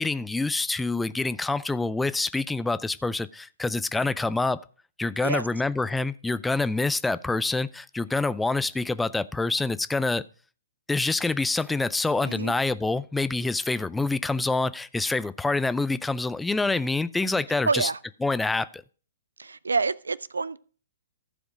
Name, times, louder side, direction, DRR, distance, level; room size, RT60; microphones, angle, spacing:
voice 1, 0.0-4.6 5.0-10.2 10.9-17.9 18.2-18.8, left 3 dB, 5° left, 0.4 m, -26 dB
voice 2, 12.2-12.5 17.7-18.0 19.4-20.6, right 4 dB, 75° right, 0.5 m, -27 dB
14.5 x 5.0 x 5.0 m
figure-of-eight pair, 120°, 0 cm